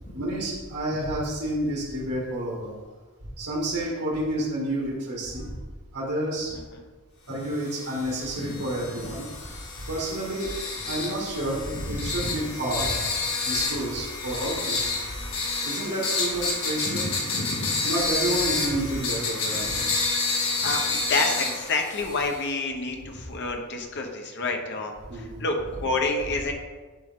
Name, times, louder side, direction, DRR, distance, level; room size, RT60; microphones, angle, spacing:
voice 1, 0.1-2.7 3.4-5.5 5.9-6.5 7.3-9.3 9.9-10.5 10.9-12.9 13.4-14.9 15.6-17.0 17.8-19.8 25.1-25.4, right 1 dB, 80° right, -6 dB, 2.1 m, -29 dB
sound 1, 7.6-22.5, left 3 dB, 65° left, 1.9 m, -29 dB
voice 2, 8.4-8.9 11.7-12.3 14.2-14.4 16.8-17.8 19.5-19.9 20.3-26.5, left 3 dB, 50° left, 3 dB, 1.0 m, -30 dB
10.5 x 4.6 x 3.7 m, 1.4 s
head